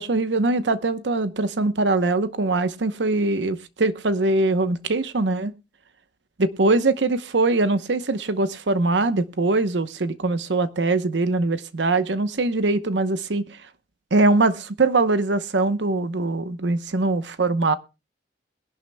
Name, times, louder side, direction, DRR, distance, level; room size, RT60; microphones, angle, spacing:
voice 1, 0.0-5.5 6.4-13.6 14.1-17.7, right 2 dB, 85° right, 0.9 m, -22 dB
22.0 x 11.5 x 2.2 m
head